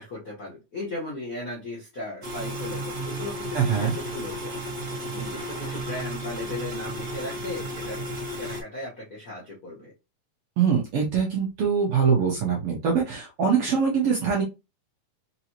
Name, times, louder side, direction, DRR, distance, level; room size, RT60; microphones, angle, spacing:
voice 1, 0.0-4.5 5.1-8.0 8.3-9.9, left 2 dB, 55° left, -5 dB, 1.0 m, -36 dB
sound 1, 2.2-8.6, right 1 dB, 45° right, 0.9 m, -33 dB
voice 2, 3.5-3.9 10.6-14.4, right 6 dB, 65° right, -1 dB, 1.5 m, -23 dB
5.0 x 2.7 x 2.9 m, 0.26 s
omnidirectional pair, 3.5 m